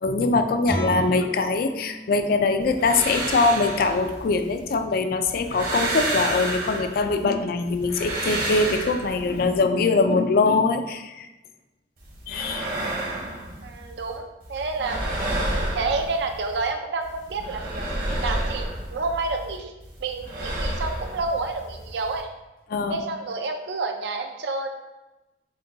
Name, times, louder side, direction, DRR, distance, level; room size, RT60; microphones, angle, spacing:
voice 1, 0.0-11.3 12.3-12.7 18.1-18.2 22.7-23.0, left 3 dB, 55° left, 8 dB, 0.3 m, -22 dB
Guitar, 0.6-6.2, equal, 85° left, 1.4 m, -37 dB
sound 1, 2.6-4.8 5.2-7.2 7.6-9.6 12.0-14.2 14.4-16.7 17.0-19.6 19.8-22.2, right 1 dB, 50° right, 1.1 m, -31 dB
voice 2, 13.6-15.0 15.7-17.9 18.2-19.7 20.0-22.3 22.9-24.7, right 3 dB, 70° right, 5 dB, 0.4 m, -29 dB
6.5 x 2.2 x 2.7 m, 1.0 s
head